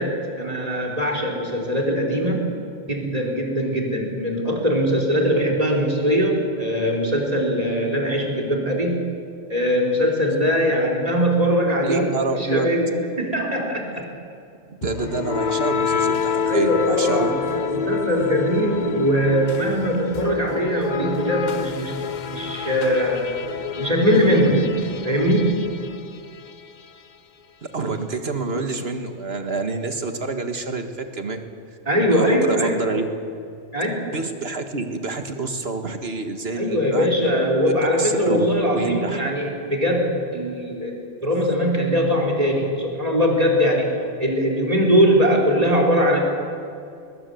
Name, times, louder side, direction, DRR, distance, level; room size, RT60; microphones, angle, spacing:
voice 1, 0.0-2.5 2.9-9.0 9.5-14.1 16.4-22.0 22.3-23.3 23.8-25.6 31.9-32.8 33.7-34.1 36.6-43.9 44.2-46.2, equal, 30° right, 1 dB, 4.1 m, -21 dB
voice 2, 11.8-12.7 14.7-17.3 27.7-31.4 32.1-33.1 34.1-37.3 37.7-37.8 38.0-38.5 38.7-39.3, right 3 dB, 55° right, 6 dB, 1.9 m, -27 dB
sound 1, 14.8-26.7, left 6 dB, 45° left, 0.7 m, -28 dB
21.5 x 21.5 x 7.9 m, 2.4 s
omnidirectional pair, 1.3 m